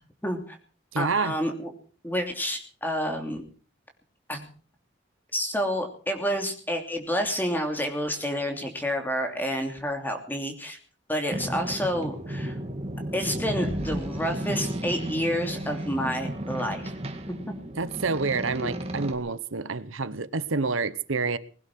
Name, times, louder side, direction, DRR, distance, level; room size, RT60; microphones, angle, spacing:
voice 1, 0.2-0.6 1.0-1.7 2.0-3.4 4.3-4.5 5.3-10.8 11.1-12.6 13.1-16.9 17.5-17.6 18.6-18.7, equal, 10° left, 2.9 m, -29 dB
voice 2, 0.9-1.3 17.8-21.4, right 4 dB, 90° right, 1.0 m, -28 dB
Boat Water vehicle, 11.3-19.1, right 1 dB, 30° right, 2.1 m, -33 dB
20.5 x 11.5 x 6.1 m
head